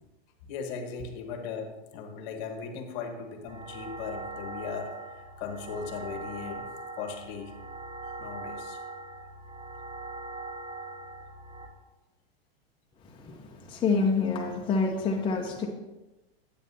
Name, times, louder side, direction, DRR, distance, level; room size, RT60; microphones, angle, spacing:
voice 1, 0.4-6.7 6.9-7.5 8.2-8.8, left 5 dB, 50° left, 5 dB, 1.3 m, -38 dB
sound 1, 3.5-11.7, right 2 dB, 25° right, 1.3 m, -41 dB
voice 2, 13.7-15.7, left 4 dB, 15° left, -1 dB, 0.8 m, -27 dB
9.2 x 8.7 x 2.7 m, 1.0 s
hypercardioid pair, 130°, 31 cm